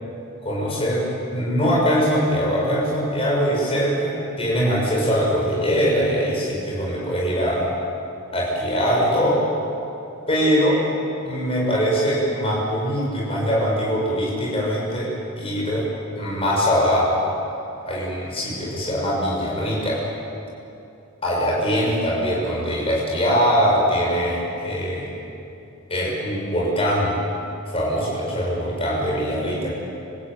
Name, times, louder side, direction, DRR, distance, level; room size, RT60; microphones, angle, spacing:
voice 1, 0.4-1.0 1.3-7.7 8.3-9.4 10.3-10.8 11.3-15.9 16.1-17.2 17.9-20.0 21.2-25.1 25.9-27.2 27.7-29.7, equal, 25° left, -4 dB, 7.1 m, -22 dB
27.5 x 15.5 x 9.0 m, 2.8 s
head